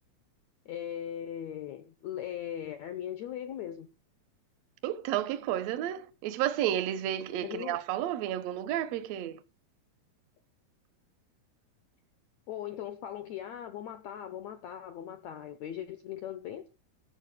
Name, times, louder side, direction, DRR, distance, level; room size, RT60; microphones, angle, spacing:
voice 1, 0.6-3.9 7.4-7.8 12.5-16.7, left 10 dB, 80° left, 1.6 m, -39 dB
voice 2, 4.8-9.4, right 12 dB, 75° right, 1.5 m, -31 dB
12.5 x 7.7 x 6.5 m
omnidirectional pair, 4.3 m